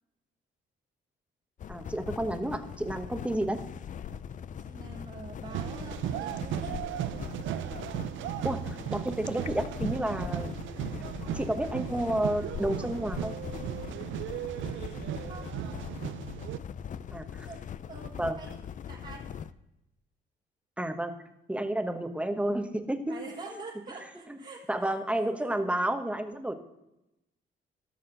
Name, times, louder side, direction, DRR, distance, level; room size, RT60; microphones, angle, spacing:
sound 1, 1.6-19.5, left 8 dB, 40° left, 0.4 m, -41 dB
voice 1, 1.7-3.6 8.4-10.5 11.3-13.3 17.1-17.5 18.2-18.4 20.8-21.1 21.5-23.1 24.3-24.4 24.7-26.5, right 1 dB, 5° right, 7 dB, 1.0 m, -31 dB
voice 2, 4.6-6.7 15.1-15.5 17.5-17.6 17.9-18.6 18.9-19.3 23.1-24.9, right 3 dB, 40° right, -4 dB, 1.8 m, -45 dB
sound 2, 5.5-16.6, right 12 dB, 75° right, 0.5 m, -36 dB
14.0 x 6.5 x 3.9 m, 0.90 s
cardioid pair, 90°, 20 cm